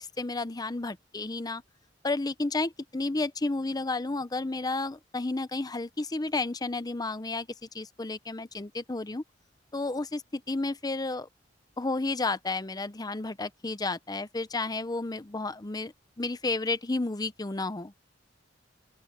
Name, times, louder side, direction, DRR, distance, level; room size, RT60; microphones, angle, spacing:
voice 1, 0.0-1.6 2.0-7.5 7.7-9.2 9.7-11.3 11.8-17.9, left 3 dB, 20° left, 0.7 m, -32 dB
open air
head